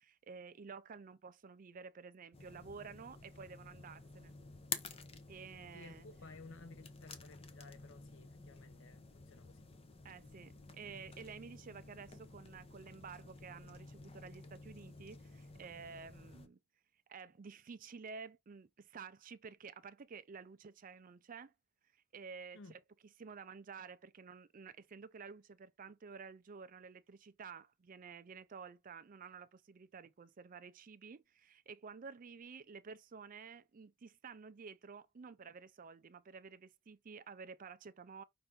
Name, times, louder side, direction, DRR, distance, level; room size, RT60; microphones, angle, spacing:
voice 1, 0.0-4.3 5.3-6.1 10.0-16.6 17.1-21.5 22.1-22.8 23.2-38.2, right 5 dB, 40° right, 0.4 m, -52 dB
sound 1, 2.3-16.5, left 4 dB, 30° left, 0.7 m, -51 dB
voice 2, 5.7-9.7 22.5-22.7, left 3 dB, 70° left, 0.7 m, -56 dB
5.5 x 2.6 x 3.5 m
head